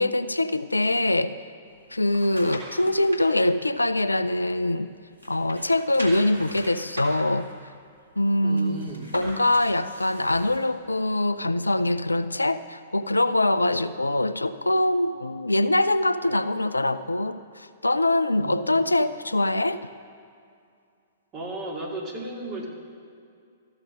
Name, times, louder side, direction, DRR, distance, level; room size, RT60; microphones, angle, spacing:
voice 1, 0.0-1.3 1.9-4.9 5.3-7.5 8.2-8.8 9.1-19.9, left 1 dB, 85° left, 13 dB, 0.4 m, -23 dB
sound 1, 1.7-3.3 3.7-4.9 5.1-10.7 11.1-11.2, equal, 85° right, 2.1 m, -41 dB
voice 2, 8.4-9.1 18.3-18.8 21.3-22.7, right 2 dB, 30° right, -1 dB, 2.3 m, -35 dB
14.0 x 6.4 x 6.4 m, 2.3 s
figure-of-eight pair, 110°, 0 cm